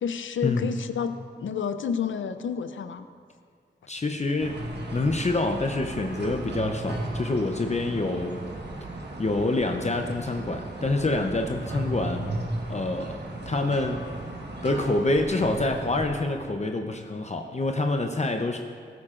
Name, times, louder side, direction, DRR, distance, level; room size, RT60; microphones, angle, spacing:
voice 1, 0.0-3.1, left 7 dB, 80° left, 10 dB, 0.5 m, -30 dB
voice 2, 3.9-4.6 4.9-8.4 9.2-12.3 12.7-13.2 13.5-14.0 14.6-18.6, left 2 dB, 35° left, 4 dB, 0.7 m, -26 dB
sound 1, 4.4-16.2, right 1 dB, 60° right, 1.3 m, -35 dB
15.0 x 8.7 x 2.5 m, 2.1 s
cardioid pair, 45°, 20 cm